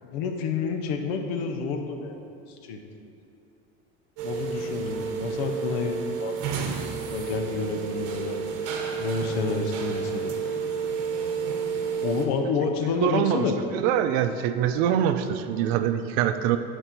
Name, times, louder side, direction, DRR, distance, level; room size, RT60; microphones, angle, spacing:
voice 1, 0.0-2.2 2.6-2.8 4.2-8.4 9.0-10.3 12.0-13.6, left 5 dB, 80° left, 5 dB, 0.9 m, -29 dB
sound 1, 4.2-12.3, right 6 dB, 50° right, 1.0 m, -30 dB
voice 2, 12.9-16.6, right 10 dB, 75° right, 9 dB, 0.5 m, -24 dB
9.0 x 4.5 x 4.4 m, 2.6 s
supercardioid pair, 135°, 31 cm